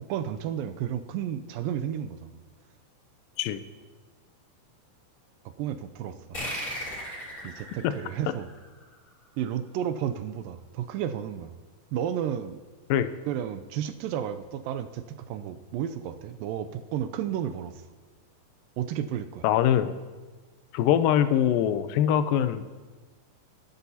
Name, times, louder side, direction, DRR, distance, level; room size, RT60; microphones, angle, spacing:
voice 1, 0.0-2.3 5.6-6.7 7.4-8.5 9.4-11.6 11.9-12.6 13.3-17.8 18.8-19.4, right 9 dB, 80° right, 9 dB, 2.1 m, -32 dB
sound 1, 6.3-9.4, equal, 20° left, 4.4 m, -37 dB
voice 2, 19.4-19.9 20.7-22.7, left 10 dB, 80° left, 11 dB, 2.1 m, -23 dB
20.5 x 11.5 x 2.8 m, 1.3 s
omnidirectional pair, 4.4 m